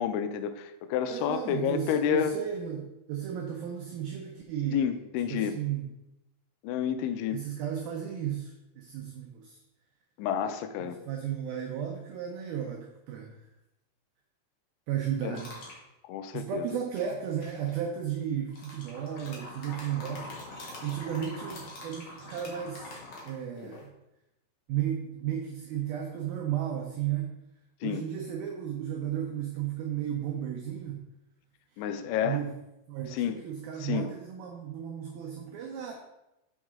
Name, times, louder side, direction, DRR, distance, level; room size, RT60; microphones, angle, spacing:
voice 1, 0.0-2.4 4.7-5.6 6.6-7.4 10.2-11.0 15.2-15.4 16.0-16.7 27.8-28.0 31.8-32.4 33.1-33.4 33.8-34.1, left 9 dB, 85° left, 10 dB, 2.9 m, -30 dB
voice 2, 1.1-5.0 5.3-5.9 7.3-9.6 10.8-13.3 14.9-15.6 16.3-20.5 20.8-23.9 24.7-27.3 27.8-31.0 31.7-32.5 32.9-35.9, right 9 dB, 90° right, 2 dB, 2.1 m, -34 dB
sound 1, 15.3-15.8 17.0-17.7 18.5-23.8, left 2 dB, 70° left, 1.4 m, -44 dB
6.5 x 6.1 x 3.6 m, 0.92 s
omnidirectional pair, 5.2 m